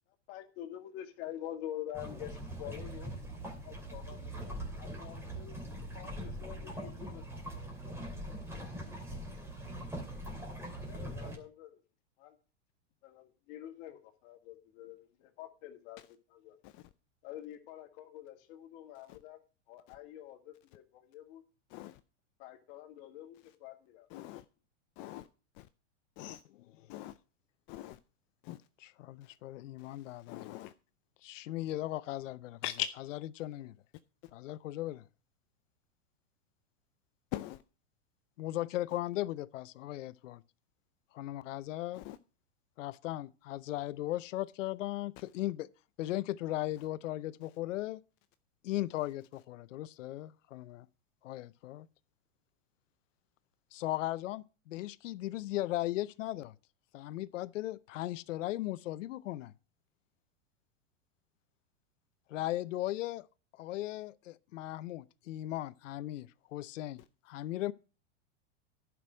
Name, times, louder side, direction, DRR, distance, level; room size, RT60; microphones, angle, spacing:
voice 1, 0.3-3.2 3.6-5.5 5.9-8.0 10.9-11.8 12.2-12.4 13.0-16.0 16.3-16.6 17.2-19.4 19.7-21.4 22.4-24.1, left 12 dB, 50° left, 2.1 m, -47 dB
sound 1, 1.9-11.4, right 1 dB, 5° right, 2.6 m, -42 dB
voice 2, 24.1-24.4 25.0-25.3 25.6-25.7 26.2-26.4 26.9-27.1 27.7-28.0 28.5-28.6 30.3-30.7 32.6-32.9 37.3-37.6 41.9-42.2, left 14 dB, 35° left, 0.5 m, -40 dB
voice 3, 28.8-30.2 31.2-32.6 33.1-33.7 34.3-35.0 38.4-40.4 41.1-42.0 42.8-45.7 46.0-48.0 48.6-50.9 51.2-51.9 53.7-56.5 56.9-59.5 62.3-63.3 63.5-67.7, left 15 dB, 80° left, 0.7 m, -37 dB
11.0 x 6.1 x 6.1 m
supercardioid pair, 135°, 37 cm